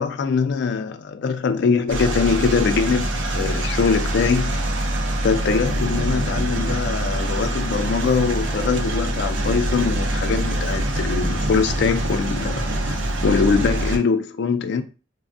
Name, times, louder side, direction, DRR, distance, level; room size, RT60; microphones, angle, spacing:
voice 1, 0.0-4.6 5.2-12.7 13.2-14.8, left 5 dB, 65° left, 0.3 m, -22 dB
sound 1, 1.9-14.0, right 1 dB, 90° right, 0.5 m, -24 dB
3.3 x 2.0 x 2.5 m
head